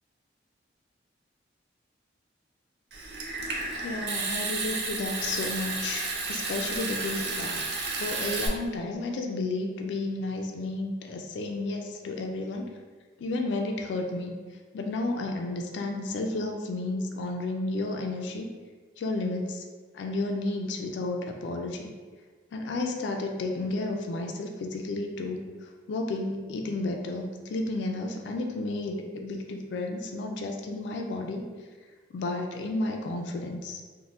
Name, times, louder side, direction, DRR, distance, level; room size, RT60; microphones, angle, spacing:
Water tap faucet / Sink (filling or washing) / Trickle dribble, 2.9-8.5, right 3 dB, 60° right, 0.4 m, -32 dB
voice 1, 3.8-7.6 8.0-12.7 13.2-14.4 14.7-18.5 19.0-19.6 19.9-21.9 22.5-25.4 25.9-31.5 32.1-33.9, left 2 dB, 75° left, 2 dB, 0.3 m, -32 dB
2.7 x 2.1 x 3.0 m, 1.4 s
head